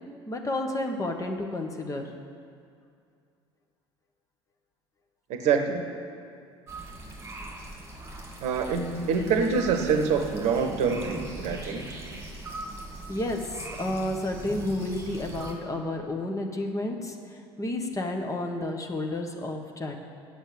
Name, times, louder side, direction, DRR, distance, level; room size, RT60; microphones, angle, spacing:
voice 1, 0.3-2.1 13.1-13.4 13.8-17.2 17.6-19.9, left 1 dB, 20° left, 3 dB, 1.3 m, -31 dB
voice 2, 5.3-5.9 8.4-12.0, right 5 dB, 50° right, 6 dB, 1.0 m, -26 dB
sound 1, 6.7-15.5, right 2 dB, 15° right, 2.3 m, -40 dB
7.9 x 7.8 x 8.7 m, 2.3 s
figure-of-eight pair, 60°, 15 cm